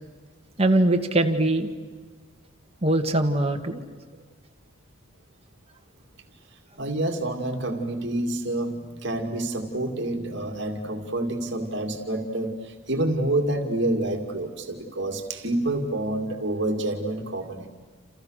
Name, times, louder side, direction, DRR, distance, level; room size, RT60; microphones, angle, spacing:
voice 1, 0.6-1.7 2.8-3.8, right 1 dB, 30° right, 4 dB, 1.8 m, -22 dB
voice 2, 6.8-17.7, right 1 dB, 55° right, 4 dB, 2.4 m, -28 dB
29.5 x 28.5 x 6.5 m, 1.4 s
head